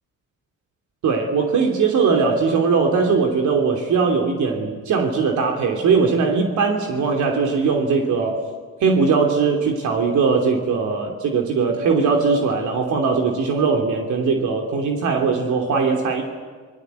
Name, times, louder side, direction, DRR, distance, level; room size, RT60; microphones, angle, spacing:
voice 1, 1.0-8.4 8.8-16.2, right 5 dB, 75° right, 2 dB, 3.0 m, -20 dB
26.5 x 20.5 x 8.2 m, 1.5 s
cardioid pair, 90°, 30 cm